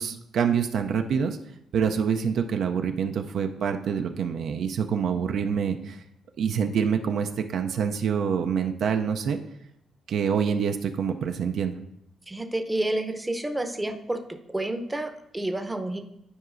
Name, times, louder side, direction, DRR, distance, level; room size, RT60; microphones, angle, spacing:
voice 1, 0.0-1.4 1.7-6.0 6.4-9.4 10.1-11.7, right 7 dB, 70° right, 6 dB, 0.4 m, -26 dB
voice 2, 12.3-14.2 14.5-16.0, right 1 dB, 15° right, 7 dB, 0.6 m, -29 dB
11.0 x 4.6 x 2.5 m, 0.78 s
cardioid pair, 75°, 0 cm